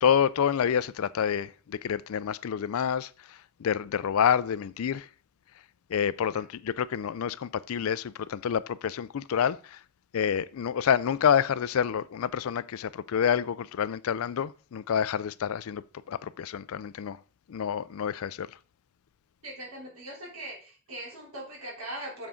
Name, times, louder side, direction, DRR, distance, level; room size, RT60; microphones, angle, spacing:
voice 1, 0.0-5.1 5.9-9.8 10.1-17.2 17.5-18.5, left 8 dB, 65° left, 0.4 m, -28 dB
voice 2, 19.4-22.3, right 1 dB, 70° right, 3.4 m, -40 dB
7.2 x 6.8 x 3.7 m
head